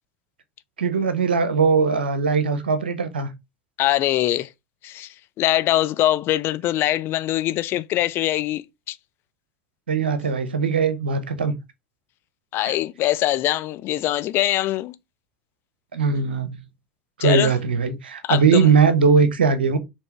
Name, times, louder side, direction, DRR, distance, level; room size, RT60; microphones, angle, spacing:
voice 1, 0.8-3.3 9.9-11.5 12.6-12.7 15.9-16.6 17.2-19.8, right 5 dB, 85° right, 0.7 m, -20 dB
voice 2, 3.8-4.5 4.8-9.0 12.5-14.9 17.2-17.5 18.2-18.6, left 14 dB, 45° left, 0.4 m, -23 dB
4.5 x 3.0 x 3.1 m
hypercardioid pair, 80°, 5 cm